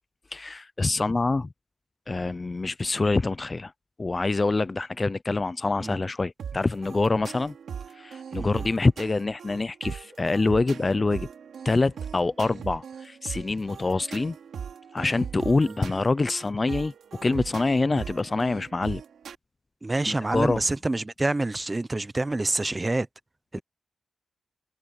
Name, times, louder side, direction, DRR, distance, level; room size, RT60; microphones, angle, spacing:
voice 1, 0.3-1.5 2.1-3.7 4.0-7.5 8.0-11.3 11.6-14.4 14.9-16.9 17.2-19.0 20.1-20.6, left 3 dB, 25° left, 0.4 m, -25 dB
sound 1, 6.4-19.3, right 7 dB, 80° right, 2.5 m, -39 dB
voice 2, 19.8-23.1 23.5-23.6, right 2 dB, 20° right, 0.7 m, -27 dB
wide cardioid pair, 155°, 0 cm